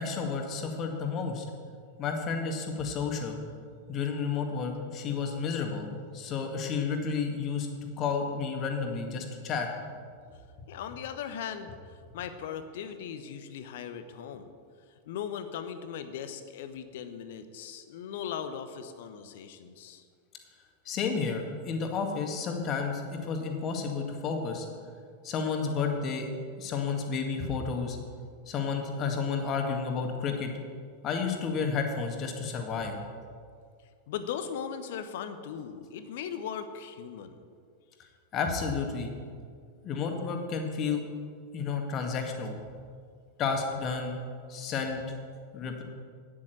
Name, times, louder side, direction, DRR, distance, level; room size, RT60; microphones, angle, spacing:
voice 1, 0.0-1.4 2.0-3.4 3.9-5.9 6.1-7.7 8.0-9.7 20.9-24.7 25.2-26.3 26.6-28.0 28.5-30.5 31.0-33.0 38.3-39.1 39.8-41.0 41.5-42.6 43.4-44.1 44.5-45.0 45.5-45.8, left 5 dB, 35° left, 3 dB, 1.9 m, -31 dB
voice 2, 10.7-11.8 12.1-14.5 15.1-20.0 34.1-37.4, left 8 dB, 55° left, 10 dB, 1.0 m, -38 dB
9.7 x 8.8 x 7.9 m, 2.1 s
figure-of-eight pair, 90°, 0 cm